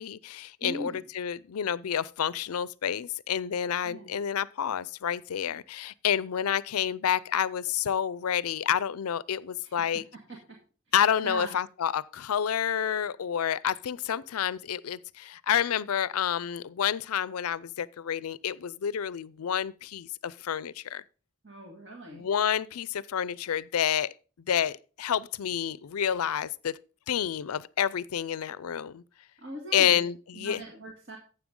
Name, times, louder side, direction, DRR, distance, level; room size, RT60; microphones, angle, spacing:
voice 1, 0.0-10.0 10.9-21.0 22.1-24.1 24.5-26.8 27.1-29.0 29.7-30.6, left 9 dB, 85° left, 0.4 m, -29 dB
voice 2, 0.6-1.0 3.8-4.1 9.6-9.8 11.2-11.5 21.4-22.3 29.4-30.0 30.3-31.2, right 1 dB, 55° right, 1.8 m, -40 dB
12.0 x 7.8 x 3.7 m
head